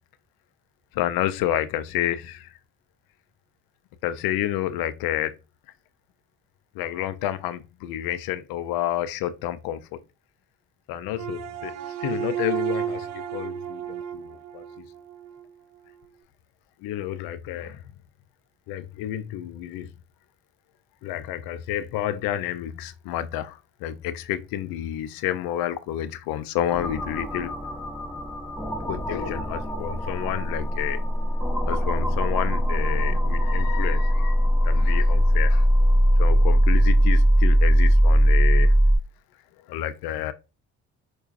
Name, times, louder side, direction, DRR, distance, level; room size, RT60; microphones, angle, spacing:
voice 1, 0.9-2.5 4.0-5.4 6.8-9.8 10.9-11.7 12.0-14.6 16.8-17.8 18.7-19.9 21.0-27.5 28.9-31.0 31.7-35.6 36.2-38.7 39.7-40.3, left 12 dB, 75° left, 0.5 m, -30 dB
sound 1, 11.1-15.5, right 9 dB, 50° right, 0.6 m, -32 dB
sound 2, 26.7-39.0, equal, ahead, 1.0 m, -20 dB
4.6 x 2.3 x 2.4 m
supercardioid pair, 80°, 36 cm